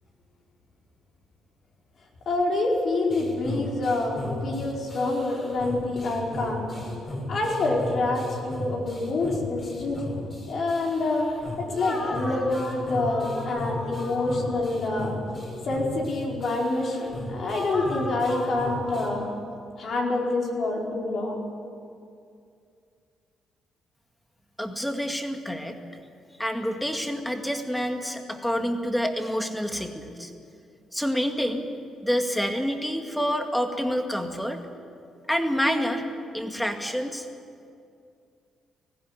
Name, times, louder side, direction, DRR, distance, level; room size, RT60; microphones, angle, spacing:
voice 1, 2.2-6.6 7.3-10.0 10.5-11.3 11.6-15.1 15.6-19.3 19.8-21.4, left 2 dB, 60° left, -2 dB, 4.8 m, -27 dB
sound 1, 3.1-19.1, left 2 dB, 40° left, 5.8 m, -35 dB
voice 2, 24.6-25.8 26.4-30.3 30.9-31.7 32.0-34.6 35.3-36.0 36.3-37.3, equal, 5° left, 5 dB, 2.2 m, -27 dB
19.0 x 15.5 x 9.8 m, 2.4 s
cardioid pair, 90°, 0 cm